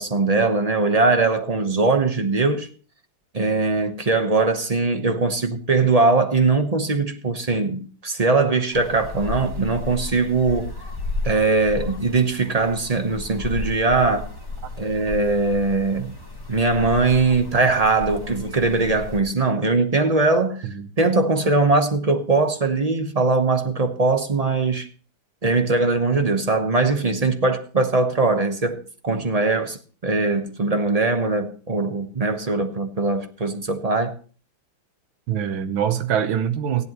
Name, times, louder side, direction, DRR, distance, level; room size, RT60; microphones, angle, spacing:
voice 1, 0.0-2.7 3.3-10.7 11.2-14.3 14.8-16.1 16.5-20.7 21.0-24.9 25.4-29.8 30.0-34.1, right 3 dB, 35° right, 0.6 m, -21 dB
sound 1, 8.7-19.2, left 3 dB, 15° left, 1.4 m, -33 dB
voice 2, 35.3-36.8, right 9 dB, 85° right, 1.8 m, -24 dB
16.0 x 11.0 x 3.0 m
omnidirectional pair, 2.1 m